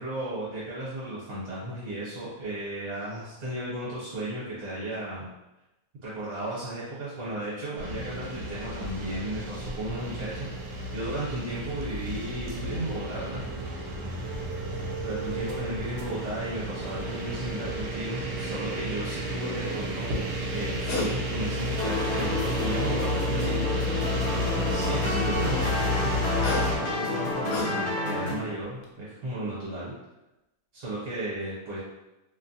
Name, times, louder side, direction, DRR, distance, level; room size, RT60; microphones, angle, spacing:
voice 1, 0.0-5.2 6.0-10.5 10.9-13.4 15.0-23.6 24.7-29.9 30.7-31.8, right 1 dB, 60° right, -8 dB, 1.2 m, -34 dB
sound 1, 7.8-26.8, equal, 80° right, 1.2 m, -31 dB
sound 2, 20.9-21.1 21.5-22.4 23.4-24.0 26.1-28.1 28.6-28.8, left 3 dB, 75° left, 1.1 m, -35 dB
sound 3, 21.8-28.3, left 2 dB, 55° left, 0.8 m, -30 dB
2.8 x 2.0 x 2.6 m, 0.97 s
omnidirectional pair, 1.8 m